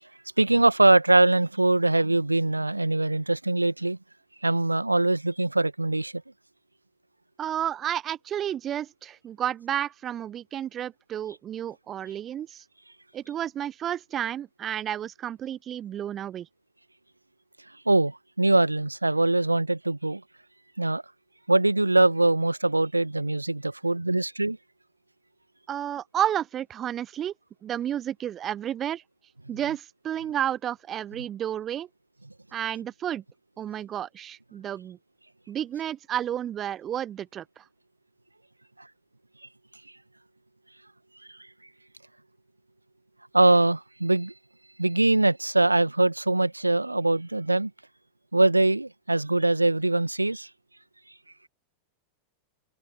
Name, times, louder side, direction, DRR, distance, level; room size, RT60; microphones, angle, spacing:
voice 1, 0.4-4.0 4.4-6.1 17.9-20.2 20.8-21.0 21.5-24.6 43.3-44.3 44.8-47.7 48.3-50.5, right 2 dB, 85° right, 1.9 m, -22 dB
voice 2, 7.4-12.6 13.1-16.5 25.7-27.3 27.6-29.0 29.5-31.9 32.5-33.2 33.6-35.0 35.5-37.6, right 10 dB, 30° right, 0.8 m, -31 dB
figure-of-eight pair, 90°, 0 cm